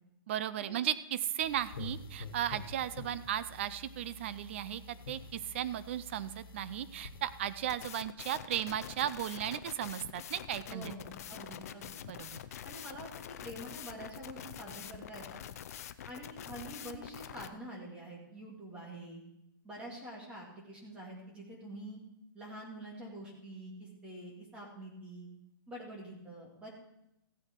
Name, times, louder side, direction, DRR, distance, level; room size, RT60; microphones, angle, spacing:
voice 1, 0.3-10.9 12.1-12.4, right 11 dB, 35° right, 14 dB, 0.5 m, -36 dB
sound 1, 1.4-7.8, left 3 dB, 80° left, 1.7 m, -48 dB
sound 2, 7.7-17.5, left 10 dB, 45° left, 0.6 m, -45 dB
voice 2, 10.7-12.0 12.6-15.4 16.1-19.2 19.6-22.0 22.3-25.3 25.7-26.7, right 1 dB, 10° right, -2 dB, 2.2 m, -46 dB
15.0 x 8.7 x 4.5 m, 0.84 s
hypercardioid pair, 175°, 12 cm